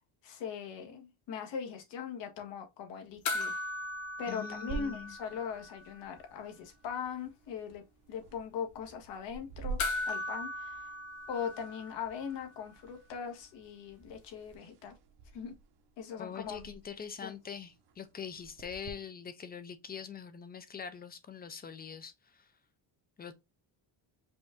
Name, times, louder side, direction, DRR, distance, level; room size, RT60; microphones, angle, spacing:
voice 1, 0.2-3.6 4.2-9.8 10.1-10.8 11.3-14.9 15.3-15.5 16.0-16.7 17.2-17.3, left 7 dB, 80° left, 1.4 m, -40 dB
sound 1, 3.2-5.9 6.2-6.3 9.8-12.4 14.5-14.6, left 2 dB, 45° left, 1.1 m, -38 dB
voice 2, 4.3-5.1 16.2-22.4 23.2-23.4, left 7 dB, 25° left, 0.3 m, -43 dB
sound 2, 4.7-18.9, right 4 dB, 65° right, 0.9 m, -49 dB
5.1 x 2.5 x 3.4 m
cardioid pair, 160°, 42 cm